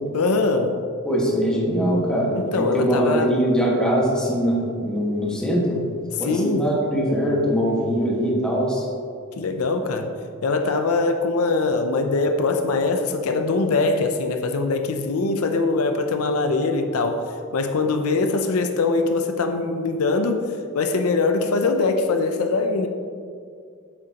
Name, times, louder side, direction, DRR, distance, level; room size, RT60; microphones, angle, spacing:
voice 1, 0.1-0.8 2.3-3.3 6.2-6.6 9.3-10.1 10.4-20.4 20.7-22.9, left 3 dB, 75° left, 6 dB, 0.5 m, -22 dB
voice 2, 1.0-5.8 6.2-8.8, equal, 5° left, -5 dB, 1.5 m, -22 dB
8.5 x 6.8 x 2.9 m, 2.3 s
head